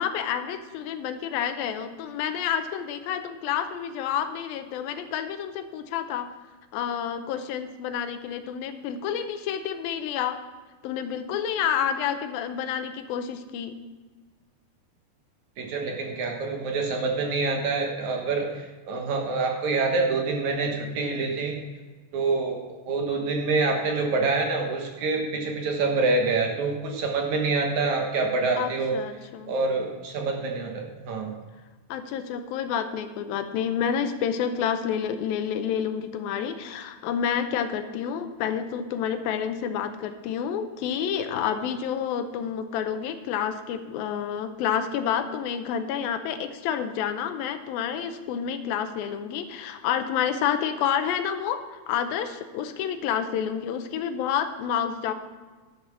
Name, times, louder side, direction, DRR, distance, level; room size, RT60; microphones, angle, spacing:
voice 1, 0.0-6.3 6.7-10.4 10.8-13.8 28.6-29.6 31.9-55.1, left 8 dB, 85° left, 9 dB, 2.6 m, -29 dB
voice 2, 15.6-21.6 22.1-29.0 29.5-31.4, right 3 dB, 65° right, 2 dB, 2.2 m, -26 dB
11.5 x 7.2 x 6.2 m, 1.3 s
omnidirectional pair, 4.1 m